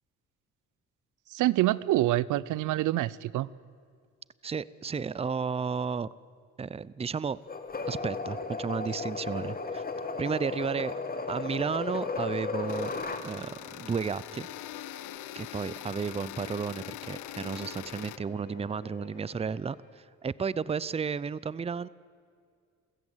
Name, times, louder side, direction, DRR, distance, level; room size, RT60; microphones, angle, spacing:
voice 1, 1.3-3.5, right 15 dB, 80° right, 20 dB, 0.6 m, -26 dB
voice 2, 4.4-6.1 6.6-7.4 7.9-9.8 10.2-10.9 11.3-12.9 13.2-14.5 15.4-21.9, right 5 dB, 20° right, 20 dB, 0.5 m, -33 dB
sound 1, 7.5-13.3, left 4 dB, 30° left, 2.3 m, -34 dB
sound 2, 12.7-18.2, left 15 dB, 90° left, 0.7 m, -43 dB
sound 3, 13.7-19.9, left 3 dB, 70° left, 5.8 m, -51 dB
28.5 x 16.0 x 8.0 m, 2.2 s
cardioid pair, 90°, 30 cm